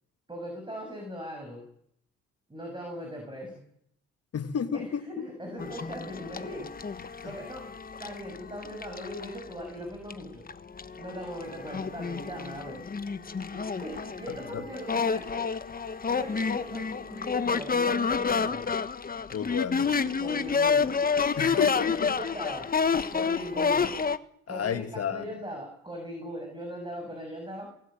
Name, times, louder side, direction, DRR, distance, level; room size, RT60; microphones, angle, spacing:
voice 1, 0.3-1.6 2.5-3.6 4.7-6.7 7.2-7.7 8.0-10.5 11.0-12.9 13.5-15.5 16.1-18.7 20.2-21.0 21.5-22.7 23.1-24.0 24.5-27.7, equal, 15° right, 2 dB, 7.2 m, -39 dB
voice 2, 4.3-5.3 19.3-20.0 21.4-21.9 24.5-25.2, left 7 dB, 55° left, 9 dB, 1.9 m, -31 dB
sound 1, 5.6-9.5 10.1-10.2 10.5-24.2, left 5 dB, 30° left, 1.2 m, -29 dB
24.0 x 17.5 x 9.0 m, 0.72 s
cardioid pair, 90°, 30 cm